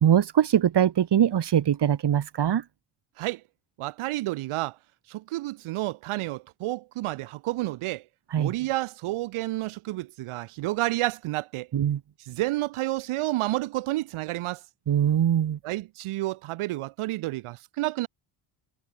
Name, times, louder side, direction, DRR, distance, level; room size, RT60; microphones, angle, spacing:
voice 1, 0.0-2.6 8.3-8.5 11.7-12.0 14.9-15.6, right 9 dB, 55° right, 3.5 m, -22 dB
voice 2, 3.8-4.8 5.1-8.0 8.4-11.7 12.2-14.6 15.6-18.1, right 18 dB, 80° right, 4.7 m, -30 dB
supercardioid pair, 75°, 49 cm